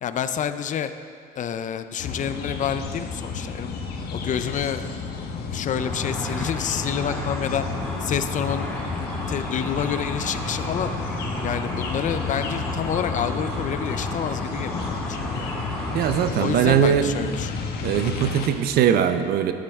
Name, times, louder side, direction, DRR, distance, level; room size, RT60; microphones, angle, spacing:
voice 1, 0.0-0.9 1.4-3.7 4.1-4.9 5.5-7.7 8.0-10.9 11.4-15.5 16.4-17.5, left 8 dB, 50° left, 10 dB, 0.6 m, -28 dB
sound 1, 2.0-18.5, left 4 dB, 70° left, 1.3 m, -32 dB
Car / Traffic noise roadway noise / Engine, 5.7-16.3, equal, 10° left, 2.6 m, -33 dB
voice 2, 15.9-17.1 17.8-19.5, right 9 dB, 70° right, 9 dB, 0.7 m, -20 dB
12.0 x 11.5 x 3.7 m, 2.1 s
cardioid pair, 110°, 17 cm